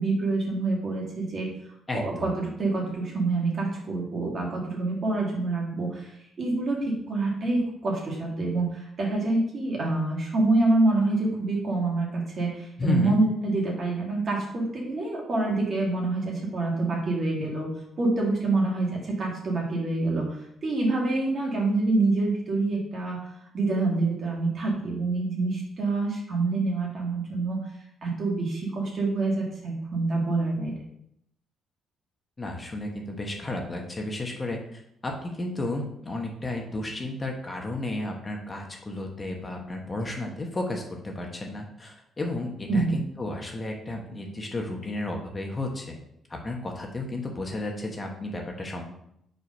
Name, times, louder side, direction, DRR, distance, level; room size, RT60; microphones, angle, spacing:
voice 1, 0.0-1.5 1.9-6.1 6.4-17.7 18.0-20.3 20.6-23.2 23.5-27.6 28.0-30.7 42.7-43.1, right 2 dB, 50° right, -2 dB, 2.0 m, -26 dB
voice 2, 1.9-2.3 12.8-13.2 32.4-45.9 46.3-48.9, left 2 dB, 25° left, 1 dB, 1.2 m, -33 dB
4.8 x 3.9 x 5.2 m, 0.75 s
cardioid pair, 90°, 0 cm